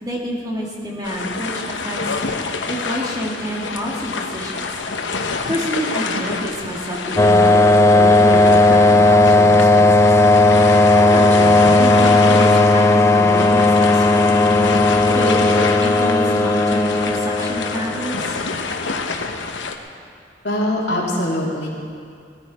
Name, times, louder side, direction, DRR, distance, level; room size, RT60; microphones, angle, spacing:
voice 1, 0.0-2.2 2.7-4.8 5.5-10.2 10.9-14.8 15.1-15.5 15.8-18.4, equal, 20° right, -3 dB, 2.3 m, -28 dB
sound 1, 1.0-19.8, left 4 dB, 85° left, 1.0 m, -27 dB
sound 2, 7.2-18.6, left 2 dB, 15° left, 0.4 m, -14 dB
voice 2, 20.4-21.7, left 1 dB, 65° left, -4 dB, 3.2 m, -22 dB
18.5 x 14.0 x 4.3 m, 2.3 s
head